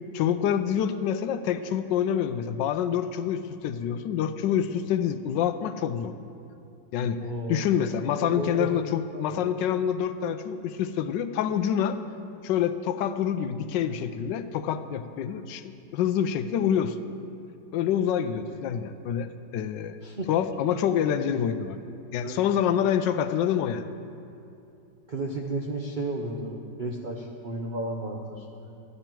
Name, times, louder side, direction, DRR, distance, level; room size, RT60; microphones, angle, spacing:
voice 1, 0.1-6.1 6.9-7.2 7.5-12.0 12.4-17.0 17.7-20.0 20.3-21.8 22.1-23.9, left 9 dB, 85° left, 10 dB, 1.2 m, -27 dB
voice 2, 7.2-7.7 8.2-8.7 9.1-9.4 20.0-20.3 20.7-20.8 22.2-22.4 25.1-28.7, right 2 dB, 60° right, -1 dB, 0.5 m, -33 dB
12.0 x 11.0 x 4.5 m, 2.7 s
omnidirectional pair, 1.9 m